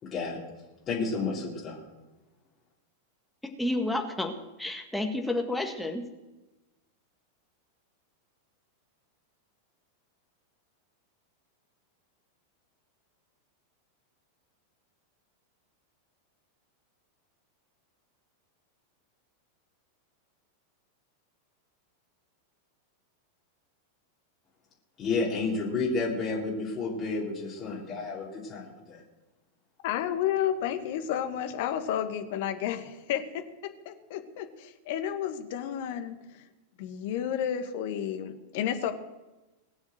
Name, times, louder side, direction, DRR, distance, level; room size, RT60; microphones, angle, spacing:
voice 1, 0.0-0.4 0.9-1.8 25.0-29.0, left 3 dB, 25° left, -5 dB, 4.0 m, -31 dB
voice 2, 3.6-6.1, left 1 dB, 5° left, 3 dB, 2.0 m, -30 dB
voice 3, 29.8-33.4 33.8-36.2 36.8-38.9, left 10 dB, 50° left, 7 dB, 1.7 m, -31 dB
20.5 x 7.1 x 7.9 m, 1.1 s
figure-of-eight pair, 90°, 0 cm